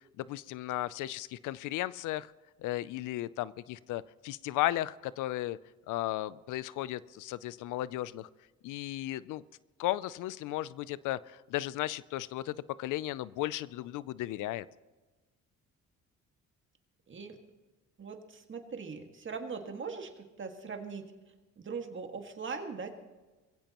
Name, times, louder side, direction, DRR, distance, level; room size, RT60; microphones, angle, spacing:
voice 1, 0.2-2.3 2.6-5.6 5.9-8.3 8.6-9.4 9.8-14.7, left 15 dB, 90° left, 19 dB, 0.5 m, -35 dB
voice 2, 17.1-17.4 18.0-21.1 21.6-22.9, right 5 dB, 40° right, 5 dB, 1.9 m, -40 dB
21.5 x 16.0 x 3.0 m, 1.2 s
cardioid pair, 90°, 30 cm